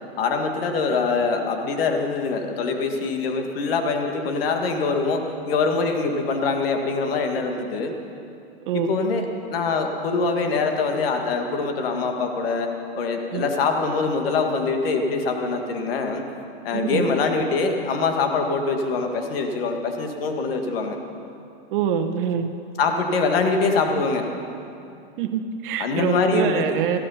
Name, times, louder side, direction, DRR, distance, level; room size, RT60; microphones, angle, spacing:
voice 1, 0.2-7.9 8.7-16.2 16.6-21.0 22.8-24.3 25.8-26.8, left 4 dB, 65° left, 4 dB, 1.8 m, -24 dB
voice 2, 8.7-9.0 13.3-13.5 16.7-17.1 21.7-22.5 25.2-27.0, right 7 dB, 55° right, 7 dB, 1.0 m, -25 dB
15.0 x 12.5 x 5.7 m, 2.6 s
hypercardioid pair, 130°, 31 cm